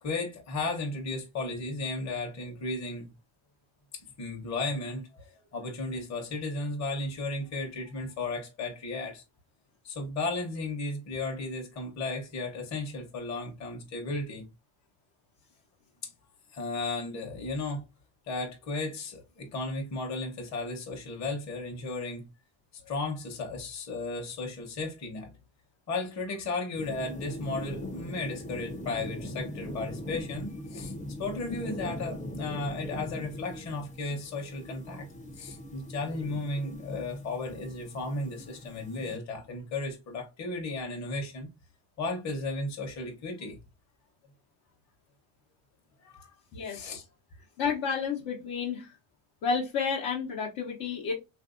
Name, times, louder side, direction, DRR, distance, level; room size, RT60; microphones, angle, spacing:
voice 1, 0.0-3.1 4.2-9.2 9.8-14.5 16.0-16.1 16.5-17.9 18.3-22.2 22.7-25.3 25.9-30.9 31.2-35.1 35.3-41.5 42.0-43.6 46.0-46.3 46.6-47.0, left 3 dB, 35° left, 0.8 m, -35 dB
sound 1, 26.8-39.2, left 1 dB, 15° left, 0.4 m, -40 dB
voice 2, 46.5-46.9 47.6-48.9 49.4-51.1, left 5 dB, 70° left, 0.9 m, -31 dB
3.4 x 2.6 x 2.4 m
cardioid pair, 125°, 49 cm